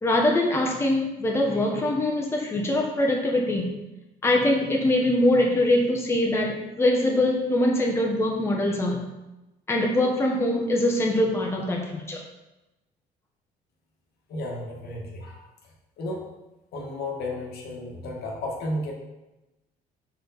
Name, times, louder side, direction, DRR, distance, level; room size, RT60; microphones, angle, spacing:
voice 1, 0.0-3.7 4.2-9.1 9.7-12.2, left 1 dB, 15° left, -1 dB, 1.0 m, -23 dB
voice 2, 14.3-15.4 16.0-16.2 16.7-18.9, left 1 dB, 70° left, -1 dB, 1.4 m, -33 dB
5.1 x 4.5 x 4.0 m, 1.0 s
cardioid pair, 110°, 17 cm